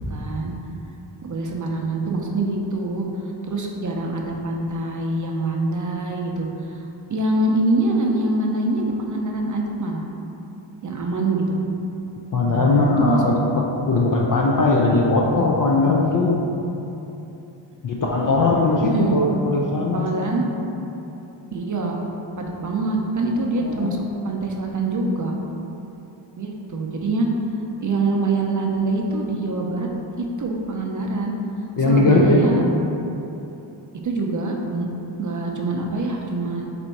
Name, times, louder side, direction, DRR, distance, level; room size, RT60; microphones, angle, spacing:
voice 1, 0.1-0.5 1.2-3.1 3.5-6.5 7.1-10.1 10.8-11.6 12.4-13.2 18.8-19.2 19.9-20.4 21.5-22.0 22.4-25.3 26.4-27.3 27.8-29.9 30.4-31.3 31.8-32.6 34.0-34.9 35.2-36.7, right 2 dB, 40° right, 0 dB, 0.5 m, -24 dB
voice 2, 12.3-16.4 17.8-20.1 23.6-23.9 31.8-32.5, left 2 dB, 45° left, -2 dB, 0.4 m, -19 dB
4.2 x 2.6 x 4.5 m, 2.9 s
wide cardioid pair, 105°, 49 cm